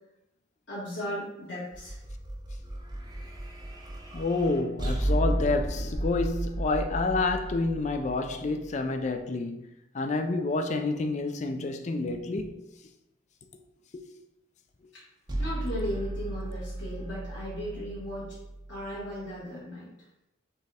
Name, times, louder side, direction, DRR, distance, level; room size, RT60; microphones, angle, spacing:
voice 1, 0.7-2.0 14.9-15.0 15.4-18.4 18.7-19.9, equal, 65° left, 1.7 m, -36 dB
sound 1, 1.7-9.0 15.3-19.4, right 1 dB, 20° right, 0.6 m, -34 dB
voice 2, 4.1-9.7 9.9-12.6 13.9-14.0, left 3 dB, 35° left, 0.4 m, -29 dB
4.4 x 3.5 x 3.4 m
head